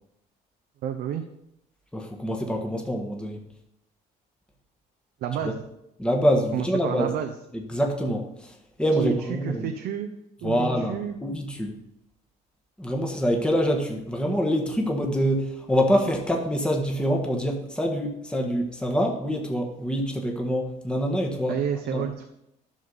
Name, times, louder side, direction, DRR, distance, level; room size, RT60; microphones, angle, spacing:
voice 1, 0.8-1.2 5.2-5.6 6.5-7.4 9.0-10.1 10.4-11.2 21.5-22.3, right 9 dB, 70° right, 5 dB, 0.8 m, -30 dB
voice 2, 1.9-3.4 5.4-5.5 6.0-7.1 7.7-9.6 10.4-11.8 12.8-21.6 21.9-22.1, equal, 5° left, 1 dB, 1.4 m, -25 dB
11.0 x 6.4 x 4.0 m, 0.83 s
cardioid pair, 110°, 17 cm